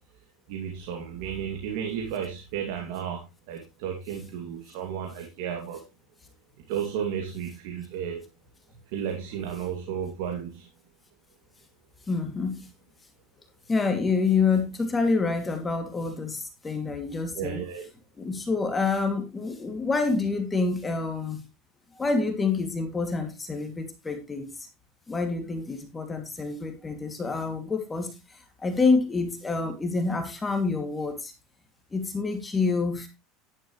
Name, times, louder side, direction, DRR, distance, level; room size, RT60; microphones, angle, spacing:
voice 1, 0.5-5.8 6.7-8.2 8.9-10.7 17.3-17.8, right 8 dB, 75° right, 2 dB, 2.6 m, -33 dB
voice 2, 12.1-12.7 13.7-17.6 18.2-21.4 21.9-24.7 25.1-31.3 31.9-33.1, left 4 dB, 15° left, 6 dB, 2.6 m, -27 dB
11.0 x 11.0 x 3.2 m, 0.24 s
supercardioid pair, 120°, 0 cm